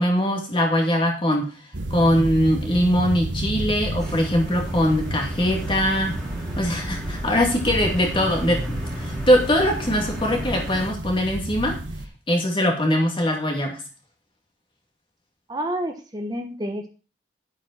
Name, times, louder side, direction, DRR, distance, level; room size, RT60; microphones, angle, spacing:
voice 1, 0.0-1.5 1.9-6.2 6.6-11.8 12.3-13.8, equal, 25° left, 2 dB, 2.6 m, -22 dB
sound 1, 1.7-12.1, right 1 dB, 75° right, 1.4 m, -31 dB
sound 2, 4.0-10.9, equal, 5° left, 3.0 m, -35 dB
voice 2, 15.5-16.9, right 1 dB, 20° right, 4 dB, 1.1 m, -29 dB
10.5 x 8.5 x 4.3 m, 0.35 s
head